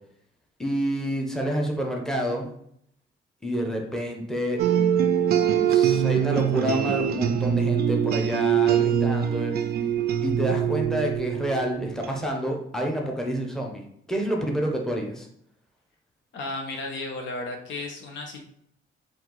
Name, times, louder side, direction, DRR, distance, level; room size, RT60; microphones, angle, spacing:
voice 1, 0.6-2.5 3.4-4.6 5.7-9.5 10.2-15.3, right 1 dB, ahead, 0 dB, 0.9 m, -28 dB
sound 1, 4.6-12.1, right 9 dB, 50° right, 0.4 m, -23 dB
voice 2, 16.3-18.4, left 2 dB, 70° left, 3 dB, 0.9 m, -34 dB
4.4 x 2.6 x 3.9 m, 0.71 s
cardioid pair, 90°, 20 cm